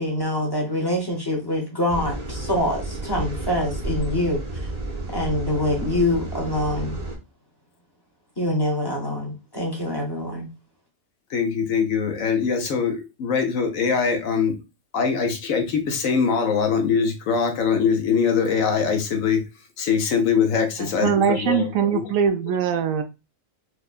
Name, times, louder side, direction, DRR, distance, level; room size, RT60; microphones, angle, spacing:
voice 1, 0.0-4.4 5.1-7.0 8.4-10.5, left 1 dB, 20° left, 0.8 m, -25 dB
sound 1, 1.9-7.2, right 2 dB, 35° right, 0.7 m, -31 dB
voice 2, 11.3-14.6 14.9-19.4 19.8-22.0, left 6 dB, 80° left, 1.2 m, -22 dB
voice 3, 20.8-23.0, right 7 dB, 80° right, 1.0 m, -22 dB
4.5 x 2.2 x 2.3 m
omnidirectional pair, 1.4 m